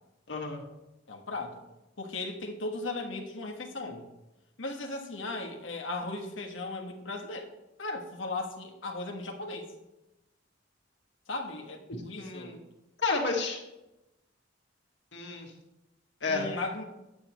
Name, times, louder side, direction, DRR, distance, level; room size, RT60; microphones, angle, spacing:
voice 1, 0.3-0.6 12.2-12.6 13.0-13.6 15.1-15.5 16.2-16.5, left 4 dB, 65° left, 1 dB, 1.6 m, -31 dB
voice 2, 1.1-1.6 2.0-4.1 4.6-7.5 7.8-9.7 11.3-12.5 16.3-16.8, left 2 dB, 90° left, 2 dB, 1.3 m, -37 dB
10.0 x 8.5 x 3.0 m, 0.95 s
head